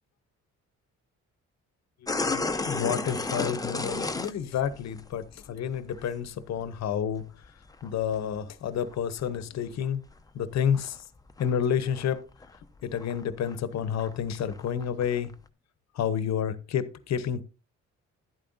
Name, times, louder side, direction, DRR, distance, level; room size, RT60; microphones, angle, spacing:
voice 1, 2.0-7.2 7.8-10.0 10.3-11.0 11.4-12.3 12.8-15.3 15.9-17.4, left 8 dB, 60° left, 0.9 m, -30 dB
sound 1, 2.1-5.5 5.7-6.1 6.4-8.4 8.9-9.9 10.1-11.6 11.9-12.2 12.4-15.4, left 3 dB, 10° left, 0.7 m, -33 dB
11.0 x 8.7 x 2.6 m
cardioid pair, 90°, 30 cm